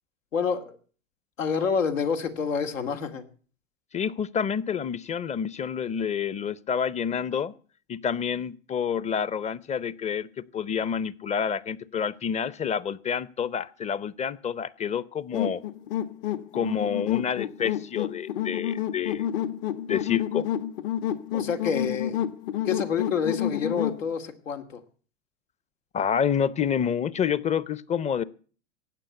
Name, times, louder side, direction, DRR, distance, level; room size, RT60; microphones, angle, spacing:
voice 1, 0.3-0.8 1.4-3.2 21.3-22.2 22.7-24.8, left 6 dB, 85° left, 6 dB, 2.4 m, -28 dB
voice 2, 3.9-7.5 7.9-15.6 16.5-19.3 19.9-20.5 25.9-28.2, left 7 dB, 20° left, 21 dB, 0.7 m, -28 dB
sound 1, 15.3-24.0, left 10 dB, 55° left, 1.4 m, -29 dB
16.0 x 9.4 x 8.0 m, 0.42 s
hypercardioid pair, 105°, 38 cm